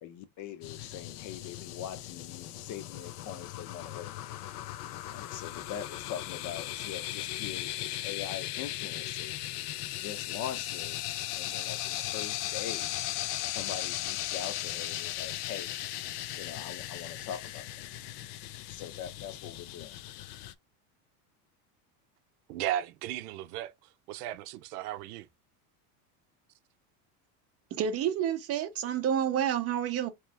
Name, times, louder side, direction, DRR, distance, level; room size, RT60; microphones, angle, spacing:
voice 1, 0.0-4.1 5.1-9.4 10.0-11.0 11.4-12.9 13.5-15.8 16.3-17.7 18.7-19.9, left 9 dB, 40° left, 0.7 m, -42 dB
sound 1, 0.6-20.5, left 14 dB, 85° left, 0.6 m, -37 dB
voice 2, 22.5-25.3, right 12 dB, 85° right, 0.6 m, -36 dB
voice 3, 27.7-30.1, right 9 dB, 35° right, 0.5 m, -29 dB
3.2 x 3.0 x 3.3 m
supercardioid pair, 130°, 45 cm